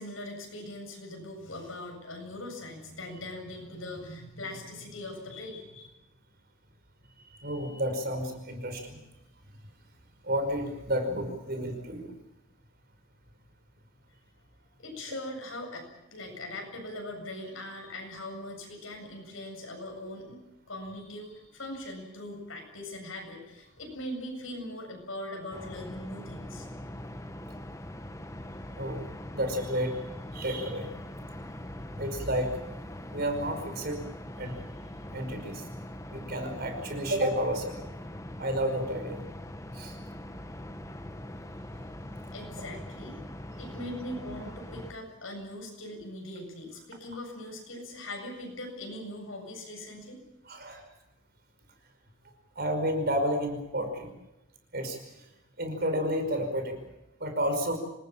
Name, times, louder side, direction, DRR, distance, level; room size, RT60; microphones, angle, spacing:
voice 1, 0.0-5.9 14.8-20.4 20.7-26.7 42.3-43.2 43.6-50.2, left 1 dB, 80° left, 3 dB, 7.7 m, -41 dB
voice 2, 7.4-9.0 10.2-12.1 28.8-29.0 29.3-30.0 30.3-30.9 32.0-32.6 33.1-34.0 34.4-34.6 35.1-35.6 36.1-37.8 38.4-39.2 39.7-40.0 50.5-50.8 52.6-54.1 54.7-55.0 55.6-56.8 57.2-57.8, equal, 50° right, 6 dB, 5.3 m, -31 dB
sound 1, 25.5-44.9, left 1 dB, 15° left, 1.1 m, -42 dB
26.5 x 19.5 x 7.3 m, 0.95 s
head